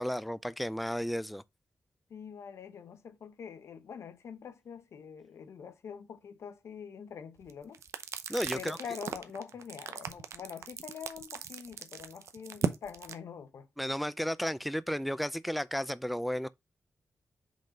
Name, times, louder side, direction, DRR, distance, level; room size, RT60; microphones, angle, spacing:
voice 1, 0.0-1.4 8.3-8.8 13.8-16.5, equal, ahead, 0.4 m, -33 dB
voice 2, 2.1-7.8 8.5-13.7, left 7 dB, 75° left, 0.8 m, -45 dB
sound 1, 7.4-13.1, right 7 dB, 80° right, 0.7 m, -37 dB
5.3 x 3.7 x 5.0 m
cardioid pair, 65°, 5 cm